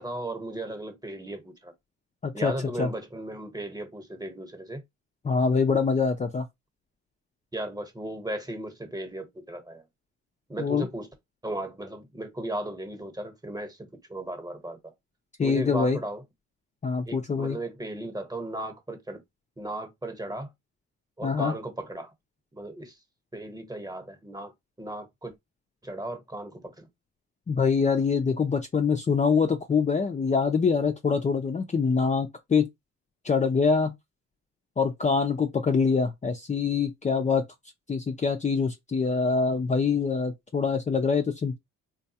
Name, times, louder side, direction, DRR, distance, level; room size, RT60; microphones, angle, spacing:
voice 1, 0.0-1.7 2.3-4.8 7.5-9.8 10.5-11.1 11.4-14.9 15.4-16.2 17.1-19.2 19.6-20.5 21.2-22.1 22.5-23.0 23.3-24.5 24.8-25.3 25.8-26.9, right 1 dB, 10° right, 1.0 m, -36 dB
voice 2, 5.2-6.5 10.6-10.9 15.4-16.0 16.8-17.6 21.2-21.5 27.5-32.7 33.2-33.9 34.8-37.4 37.9-41.6, left 5 dB, 25° left, 0.5 m, -24 dB
3.9 x 2.3 x 2.8 m
cardioid pair, 90°, 30 cm